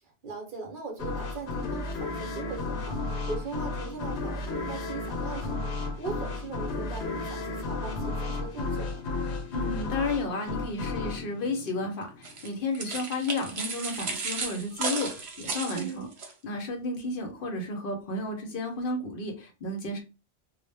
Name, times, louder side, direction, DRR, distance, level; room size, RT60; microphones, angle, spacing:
voice 1, 0.0-9.0 15.7-16.1, right 4 dB, 55° right, 1 dB, 0.8 m, -39 dB
sound 1, 1.0-12.5, left 3 dB, 90° left, 0.9 m, -33 dB
voice 2, 9.5-16.1 16.4-20.0, left 2 dB, 60° left, 4 dB, 0.7 m, -32 dB
sound 2, 12.2-16.3, right 4 dB, 75° right, 1.0 m, -34 dB
2.0 x 2.0 x 3.3 m, 0.31 s
omnidirectional pair, 1.1 m